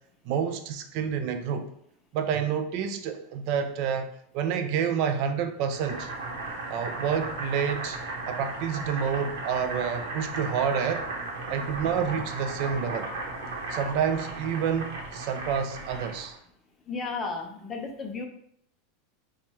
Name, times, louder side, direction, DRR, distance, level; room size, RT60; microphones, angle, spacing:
voice 1, 0.3-1.7 2.1-4.1 4.3-6.1 6.7-8.0 8.3-11.1 11.5-13.1 13.7-16.4, right 7 dB, 45° right, 7 dB, 0.3 m, -28 dB
Boiling, 5.7-16.4, right 2 dB, 80° right, 0.9 m, -35 dB
voice 2, 16.9-18.3, left 4 dB, 20° left, 3 dB, 0.5 m, -33 dB
4.4 x 2.3 x 3.0 m, 0.68 s
supercardioid pair, 160°, 0 cm